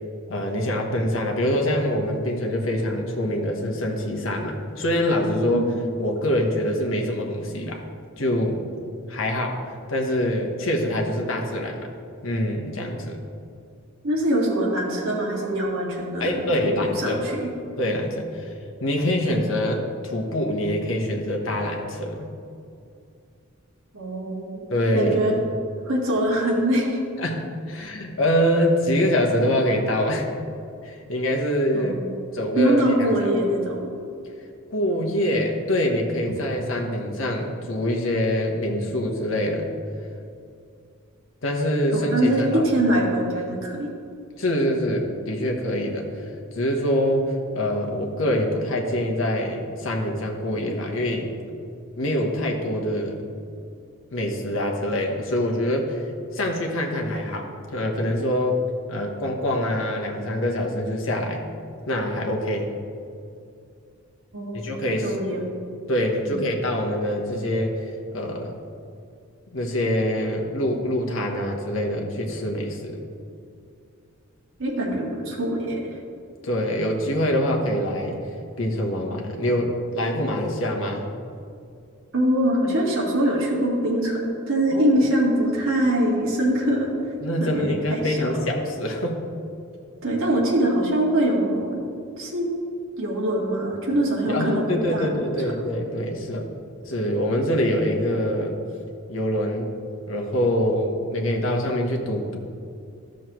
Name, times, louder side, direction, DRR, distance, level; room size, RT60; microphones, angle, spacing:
voice 1, 0.3-5.6 6.0-7.8 8.2-8.6 9.1-9.6 9.9-11.8 12.2-13.2 16.2-17.2 17.8-18.5 18.8-22.3 24.7-25.2 27.2-30.3 30.8-32.0 32.3-33.1 34.7-39.7 41.4-42.6 44.4-51.3 52.0-53.2 54.1-56.0 56.3-58.6 58.9-61.4 61.9-62.7 64.5-65.1 65.9-67.8 68.1-68.6 69.5-73.0 76.4-78.3 78.6-81.0 84.7-85.1 87.2-89.2 94.3-98.6 99.1-99.7 100.1-102.4, equal, 70° left, 1 dB, 1.1 m, -25 dB
voice 2, 14.0-17.5 23.9-24.6 24.9-25.4 25.8-27.0 31.7-32.2 32.6-33.9 41.9-43.9 64.3-64.6 65.0-65.4 66.3-66.4 74.6-75.8 82.1-86.9 87.4-88.2 90.0-91.8 92.2-92.5 93.0-95.1 95.4-95.5, right 1 dB, 80° right, -4 dB, 1.8 m, -23 dB
13.0 x 6.3 x 3.1 m, 2.5 s
head